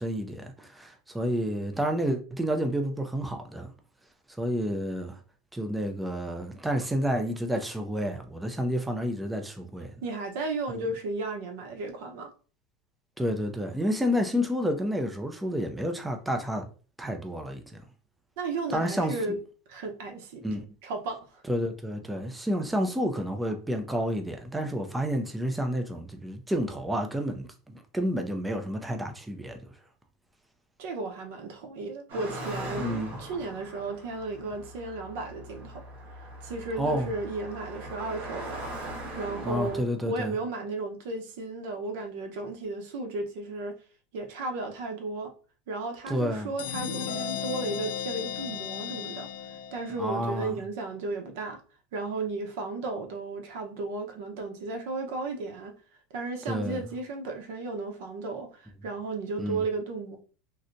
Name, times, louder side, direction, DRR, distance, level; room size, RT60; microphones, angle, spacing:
voice 1, 0.0-3.7 4.4-5.2 5.5-9.9 10.7-10.9 13.2-16.7 17.0-17.8 18.7-19.4 20.4-20.6 21.5-29.6 32.8-33.2 36.8-37.1 39.4-40.4 46.1-46.5 50.0-50.6 56.5-56.8 59.4-59.6, equal, 5° right, 0.4 m, -30 dB
voice 2, 10.0-12.3 18.4-19.4 19.7-21.4 30.8-35.8 36.4-38.6 39.2-43.7 44.1-45.3 45.7-49.3 49.7-51.6 51.9-55.7 56.1-60.2, right 3 dB, 60° right, 0.8 m, -34 dB
Car passing by, 32.1-39.8, right 1 dB, 80° right, 1.4 m, -40 dB
sound 1, 46.6-50.1, left 8 dB, 80° left, 0.5 m, -35 dB
3.2 x 2.7 x 2.6 m
supercardioid pair, 175°, 0 cm